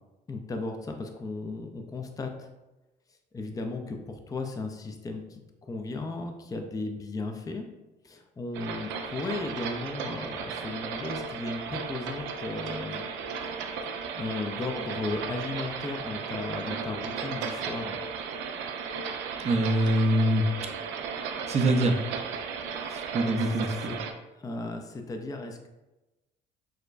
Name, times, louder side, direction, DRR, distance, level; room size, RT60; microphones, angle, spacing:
voice 1, 0.3-2.5 3.3-7.7 8.0-13.0 14.2-18.0 22.9-23.5 23.8-23.9 24.4-25.7, left 3 dB, 20° left, 5 dB, 0.5 m, -35 dB
sound 1, 8.5-24.1, right 6 dB, 80° right, 0.5 m, -35 dB
voice 2, 19.4-20.4 21.5-22.0 22.9-23.9, right 1 dB, 35° right, 5 dB, 0.6 m, -24 dB
6.3 x 2.2 x 2.5 m, 1.0 s
supercardioid pair, 80°, 19 cm